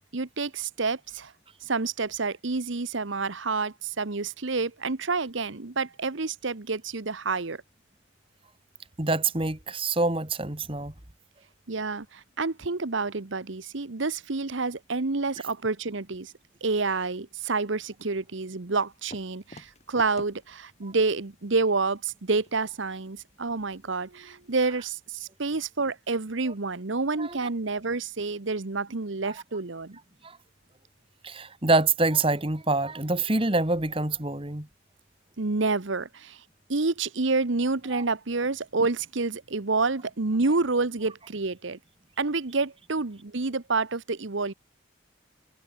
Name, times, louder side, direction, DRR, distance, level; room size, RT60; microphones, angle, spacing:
voice 1, 0.1-1.3 1.6-7.6 11.7-16.3 16.6-30.0 35.4-36.4 36.7-41.8 42.2-44.5, right 3 dB, 70° right, 1.1 m, -28 dB
voice 2, 9.0-10.9 27.2-27.4 29.2-29.3 30.2-30.4 31.2-34.7 37.9-38.0, right 3 dB, 25° right, 2.0 m, -26 dB
sound 1, 18.9-25.3, left 1 dB, 35° left, 6.4 m, -53 dB
head